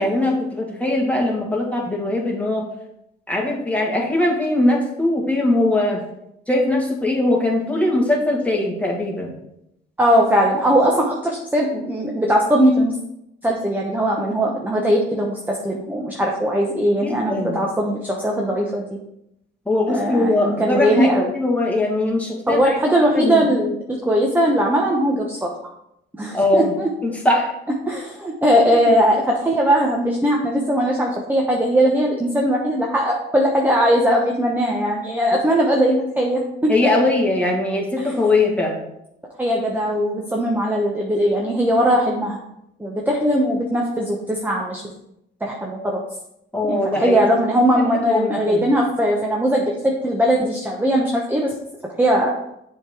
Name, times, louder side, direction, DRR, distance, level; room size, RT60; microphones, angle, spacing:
voice 1, 0.0-2.7 3.3-6.0 6.5-9.3 17.0-17.6 19.7-21.1 21.3-23.4 26.3-26.7 27.2-27.5 28.7-28.9 36.7-38.7 46.5-47.3 48.1-48.6, left 2 dB, 5° left, -2 dB, 2.0 m, -21 dB
voice 2, 10.0-12.9 13.4-18.8 19.9-21.3 22.5-23.8 24.0-25.5 26.2-26.9 27.8-36.7 38.0-38.1 39.4-42.4 42.8-44.8 45.4-46.0 46.7-51.5 52.0-52.3, equal, 10° right, -1 dB, 1.0 m, -19 dB
7.1 x 3.8 x 4.7 m, 0.80 s
cardioid pair, 90°, 20 cm